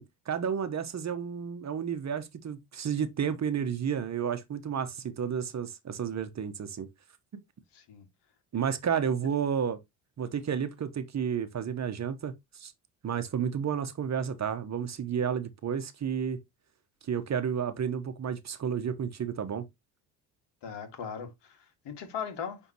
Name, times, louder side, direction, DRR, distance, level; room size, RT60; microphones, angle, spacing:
voice 1, 0.0-6.9 7.3-7.4 8.5-9.8 10.2-12.7 13.0-16.4 17.1-19.7, right 7 dB, 35° right, 1.1 m, -31 dB
voice 2, 7.7-8.1 20.6-21.6 21.8-22.6, left 7 dB, 60° left, 2.4 m, -38 dB
9.2 x 3.6 x 3.0 m
supercardioid pair, 75°, 47 cm